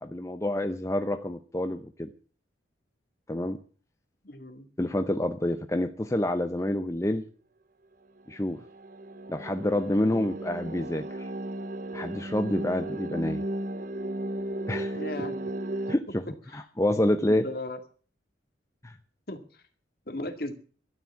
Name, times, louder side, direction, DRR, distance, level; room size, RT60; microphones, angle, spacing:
voice 1, 0.0-2.1 3.3-3.6 4.8-7.3 8.3-8.6 9.3-11.3 11.9-13.4 14.7-15.0 15.9-16.2 16.5-17.5 18.8-19.0, left 1 dB, 15° left, 8 dB, 0.7 m, -28 dB
voice 2, 4.2-4.7 14.9-15.3 16.5-16.6 17.3-17.8 19.3-19.4 20.1-20.5, left 1 dB, 55° left, 8 dB, 2.1 m, -36 dB
sound 1, 8.2-16.0, right 1 dB, 45° right, 0.8 m, -35 dB
13.0 x 10.0 x 8.4 m, 0.40 s
head